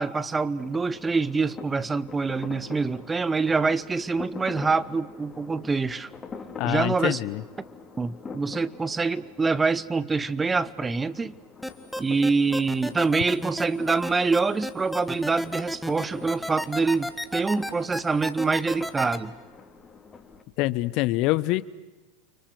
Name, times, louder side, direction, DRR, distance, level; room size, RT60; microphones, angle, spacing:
voice 1, 0.0-6.1 6.7-7.2 8.0-11.3 12.0-19.3, right 4 dB, 15° right, 18 dB, 1.0 m, -25 dB
sound 1, 0.5-20.4, left 5 dB, 20° left, 3.4 m, -45 dB
voice 2, 6.6-7.4 20.6-21.7, left 18 dB, 50° left, 18 dB, 0.9 m, -25 dB
sound 2, 11.6-19.2, equal, ahead, 1.8 m, -32 dB
30.0 x 24.5 x 8.0 m, 1.1 s
figure-of-eight pair, 85°, 0 cm